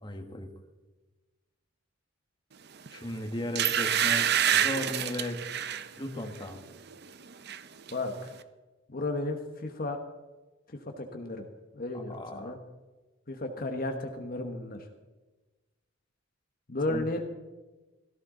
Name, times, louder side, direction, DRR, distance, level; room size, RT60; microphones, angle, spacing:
voice 1, 0.0-0.5 2.9-5.4 6.0-6.6 12.1-12.6 16.9-17.0, left 1 dB, 25° left, 4 dB, 1.5 m, -36 dB
sound 1, 2.9-3.0 3.6-5.9 6.3-6.6 6.9-7.6 7.9-8.0, right 9 dB, 55° right, 0.7 m, -27 dB
voice 2, 7.9-8.3 8.9-10.0 10.7-11.5 11.7-12.6 13.3-14.9 16.7-17.2, left 2 dB, 45° left, 4 dB, 1.2 m, -34 dB
16.5 x 14.0 x 3.9 m, 1.2 s
head